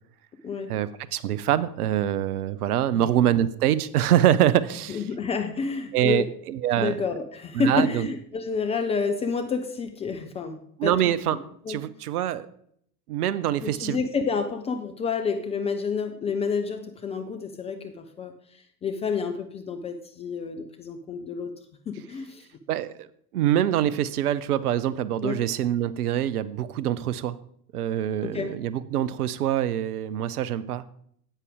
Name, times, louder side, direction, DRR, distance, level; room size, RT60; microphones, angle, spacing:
voice 1, 0.7-5.0 5.9-7.0 7.5-8.1 10.8-11.4 11.7-12.5 13.1-14.0 22.7-23.1 23.3-27.4 27.7-30.8, right 11 dB, 65° right, 16 dB, 0.6 m, -24 dB
voice 2, 4.9-6.2 6.8-11.1 11.7-11.8 13.6-21.5 21.9-22.5 25.2-25.4 28.3-28.5, left 5 dB, 15° left, 5 dB, 0.4 m, -29 dB
9.9 x 8.2 x 3.5 m, 0.66 s
figure-of-eight pair, 75°, 49 cm